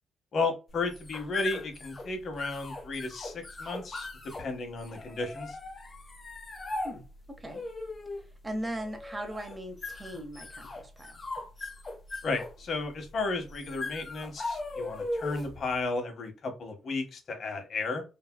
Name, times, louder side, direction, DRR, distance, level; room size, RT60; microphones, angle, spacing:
voice 1, 0.3-4.1 4.4-5.6 12.2-18.0, left 3 dB, 55° left, 5 dB, 0.9 m, -33 dB
sound 1, 0.7-15.6, left 2 dB, 30° left, 0.6 m, -39 dB
voice 2, 8.4-11.2, right 1 dB, 15° right, 5 dB, 0.8 m, -38 dB
3.3 x 2.2 x 2.2 m, 0.31 s
cardioid pair, 90°, 0 cm